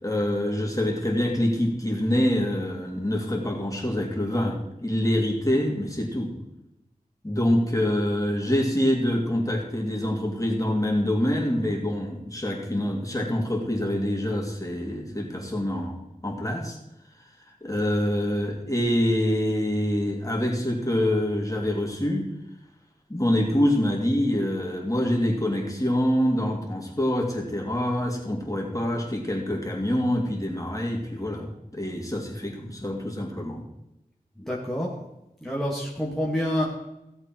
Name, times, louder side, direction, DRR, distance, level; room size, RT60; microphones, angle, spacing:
voice 1, 0.0-6.3 7.2-16.0 16.2-16.8 17.6-22.3 23.1-33.6, left 1 dB, 20° left, 0 dB, 3.1 m, -25 dB
voice 2, 34.4-34.9 35.4-36.7, equal, ahead, -4 dB, 2.2 m, -27 dB
17.0 x 7.8 x 4.7 m, 0.90 s
wide cardioid pair, 45°, 15 cm